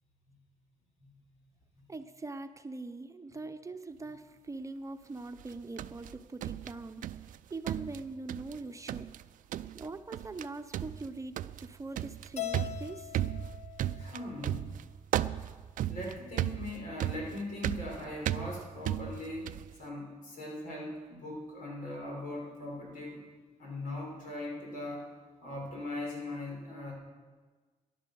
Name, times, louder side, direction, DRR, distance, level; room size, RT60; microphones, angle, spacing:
voice 1, 1.9-9.1 9.7-13.2, right 3 dB, 25° right, 8 dB, 0.8 m, -42 dB
sound 1, 5.4-7.4 7.7-8.6 8.9-9.2 9.5-9.9 10.1-10.5 10.7-19.7, right 12 dB, 80° right, 0.4 m, -35 dB
Keyboard (musical), 12.4-14.7, left 14 dB, 55° left, 0.7 m, -42 dB
voice 2, 14.0-14.7 15.9-19.5 19.8-23.2 23.6-25.1 25.4-26.9, left 1 dB, 85° left, -2 dB, 5.7 m, -40 dB
14.5 x 11.0 x 7.0 m, 1.4 s
cardioid pair, 105°, 14 cm